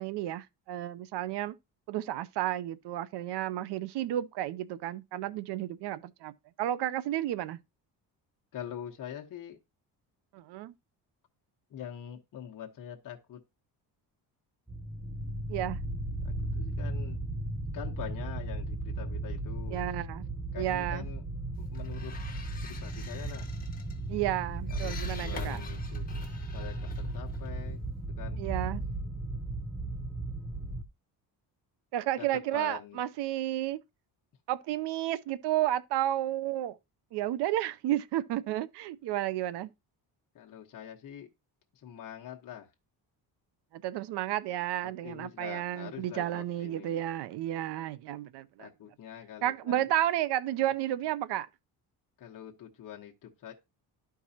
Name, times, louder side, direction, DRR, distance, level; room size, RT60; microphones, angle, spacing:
voice 1, 0.0-1.5 1.9-6.3 6.6-7.6 10.3-10.7 15.5-15.8 19.7-20.2 20.6-21.1 24.1-25.6 28.4-28.8 31.9-33.8 34.5-36.8 37.1-39.7 43.7-48.7 49.4-51.5, right 13 dB, 75° right, 0.6 m, -32 dB
voice 2, 8.5-9.6 11.7-13.4 16.2-17.2 17.7-19.8 20.5-21.2 21.6-22.1 22.6-23.5 24.7-26.1 26.5-27.8 28.2-28.4 32.2-33.0 40.3-41.3 41.7-42.7 44.8-47.0 48.6-49.9 52.2-53.5, left 10 dB, 50° left, 1.1 m, -44 dB
sound 1, 14.7-30.8, right 2 dB, ahead, 0.4 m, -36 dB
sound 2, 21.6-28.0, left 5 dB, 20° left, 1.5 m, -47 dB
12.0 x 4.6 x 2.8 m
cardioid pair, 145°, 41 cm